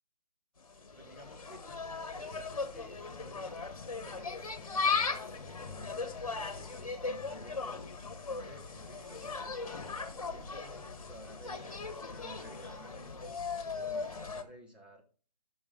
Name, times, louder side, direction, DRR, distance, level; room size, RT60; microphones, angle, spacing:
Insect, 0.6-14.4, left 4 dB, 55° left, 1.6 m, -38 dB
voice 1, 0.9-7.8 8.3-11.8 12.0-13.3 13.7-15.0, right 1 dB, 5° right, -2 dB, 1.6 m, -54 dB
17.5 x 6.3 x 3.4 m, 0.38 s
figure-of-eight pair, 145°, 20 cm